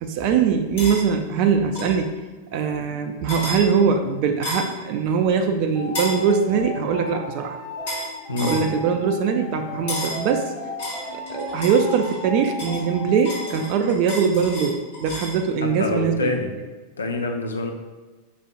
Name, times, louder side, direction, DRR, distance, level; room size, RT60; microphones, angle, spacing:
voice 1, 0.0-2.1 2.5-7.6 8.4-10.5 11.1-16.3, right 6 dB, 45° right, 5 dB, 0.4 m, -22 dB
sound 1, 0.8-1.0 1.7-2.0 3.3-3.6 4.4-4.7 5.9-6.2 7.9-8.1 8.4-8.7 9.9-10.2 10.8-12.2 12.6-15.4, left 1 dB, 55° left, 1.5 m, -31 dB
sound 2, 5.7-13.6, left 1 dB, 15° left, 1.4 m, -35 dB
voice 2, 8.3-8.6 15.6-16.5 17.0-17.7, left 2 dB, 75° left, 3 dB, 0.5 m, -26 dB
5.1 x 4.0 x 2.4 m, 1.3 s
figure-of-eight pair, 90°, 0 cm